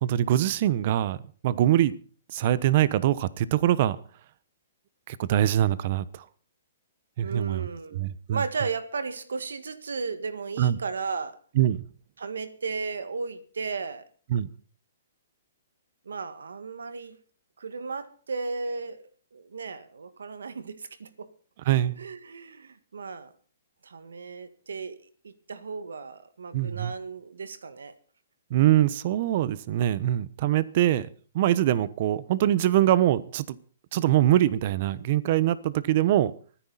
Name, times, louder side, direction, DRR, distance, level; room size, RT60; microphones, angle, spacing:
voice 1, 0.0-1.2 1.4-1.9 2.3-4.0 5.1-6.2 7.2-8.4 10.6-10.8 11.6-11.8 14.3-14.5 21.7-22.0 26.5-26.9 28.5-31.1 31.3-33.6 33.9-36.3, right 12 dB, 50° right, 1.0 m, -23 dB
voice 2, 7.2-11.4 12.2-14.1 16.1-17.2 17.6-21.3 22.0-23.3 23.8-25.0 25.2-27.9, right 4 dB, 85° right, 1.8 m, -35 dB
24.0 x 10.0 x 4.2 m
hypercardioid pair, 135°, 0 cm